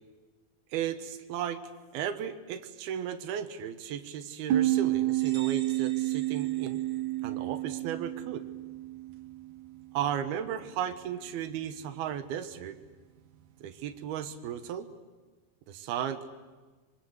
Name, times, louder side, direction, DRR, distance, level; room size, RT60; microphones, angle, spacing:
voice 1, 0.7-1.6 1.9-6.8 7.2-8.5 9.9-12.8 13.6-14.9 15.7-16.3, right 9 dB, 90° right, 9 dB, 3.1 m, -35 dB
sound 1, 4.5-9.8, right 16 dB, 65° right, 2.4 m, -30 dB
sound 2, 5.1-7.7, right 6 dB, 35° right, 2.6 m, -50 dB
25.0 x 24.0 x 8.1 m, 1.3 s
omnidirectional pair, 4.3 m